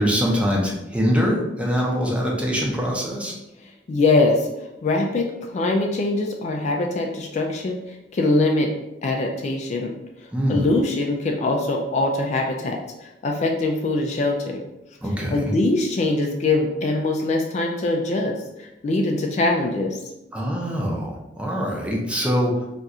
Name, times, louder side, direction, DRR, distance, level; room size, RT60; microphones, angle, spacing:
voice 1, 0.0-3.3 10.3-10.6 15.0-15.5 20.3-22.7, equal, 5° right, -2 dB, 0.6 m, -23 dB
voice 2, 3.6-4.5 4.8-8.7 9.0-9.9 10.5-14.6 15.3-20.0, left 2 dB, 40° left, 2 dB, 0.3 m, -23 dB
2.5 x 2.4 x 4.1 m, 0.93 s
head